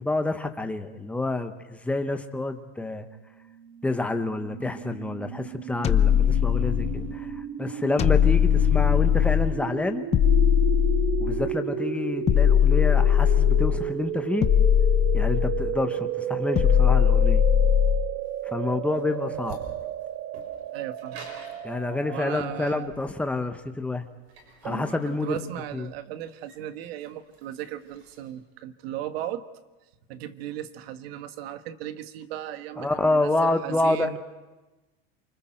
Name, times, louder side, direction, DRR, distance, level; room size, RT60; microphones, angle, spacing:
voice 1, 0.0-3.1 3.8-10.0 11.2-14.5 15.1-17.5 18.4-19.6 21.6-24.1 24.6-25.4 25.7-25.9 32.8-34.2, left 2 dB, 5° left, 7 dB, 1.0 m, -28 dB
sound 1, 3.7-22.9, right 9 dB, 40° right, 1.4 m, -33 dB
sound 2, 5.8-7.2 8.0-9.6 10.1-11.5 12.3-13.9 14.4-15.8 16.6-18.2, left 10 dB, 20° left, 0.6 m, -20 dB
sound 3, 17.8-28.3, right 3 dB, 90° right, 6.5 m, -45 dB
voice 2, 20.7-21.3 22.1-22.8 25.0-29.4 30.1-34.2, right 11 dB, 70° right, 10 dB, 1.5 m, -36 dB
28.5 x 25.5 x 4.5 m, 1.1 s
supercardioid pair, 150°, 31 cm